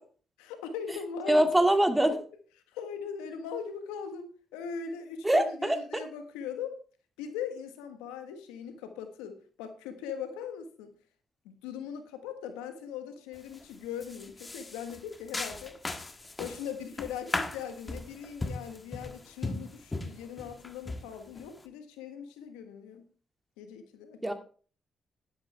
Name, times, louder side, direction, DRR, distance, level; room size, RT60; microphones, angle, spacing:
voice 1, 0.4-1.4 2.7-6.8 7.2-10.9 11.4-15.8 16.4-23.1 23.6-24.3, left 7 dB, 90° left, 7 dB, 1.4 m, -40 dB
voice 2, 1.3-2.2 5.2-5.8 24.2-24.3, right 1 dB, 15° right, 6 dB, 2.2 m, -23 dB
sound 1, 13.4-13.6 14.0-21.6, left 2 dB, 30° left, 1.5 m, -38 dB
12.0 x 10.5 x 3.4 m, 0.41 s
hypercardioid pair, 45°, 0 cm